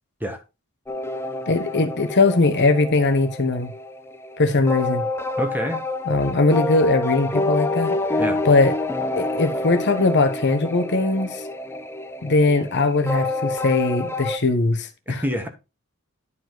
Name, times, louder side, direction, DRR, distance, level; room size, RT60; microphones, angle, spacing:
sound 1, 0.9-14.4, left 2 dB, 10° left, 0.7 m, -28 dB
voice 1, 1.5-3.7 4.4-5.1 6.1-8.0 8.4-8.7 9.2-11.4 12.2-15.2, left 3 dB, 55° left, 1.1 m, -20 dB
voice 2, 5.4-5.8 8.2-8.4 15.1-15.5, equal, 10° right, 1.4 m, -27 dB
11.0 x 5.0 x 3.9 m
head